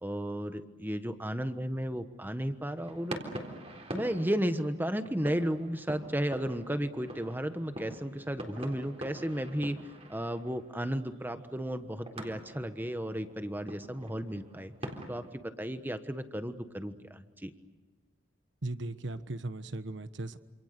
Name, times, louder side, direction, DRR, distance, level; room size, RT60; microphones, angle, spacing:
voice 1, 0.0-3.3 3.9-9.8 10.1-14.7 15.1-17.5, equal, 10° right, 9 dB, 1.3 m, -34 dB
sound 1, 2.8-15.3, right 1 dB, 30° right, 3.9 m, -45 dB
voice 2, 18.6-20.4, right 2 dB, 65° right, 12 dB, 1.3 m, -37 dB
27.5 x 27.5 x 6.8 m, 1.2 s
head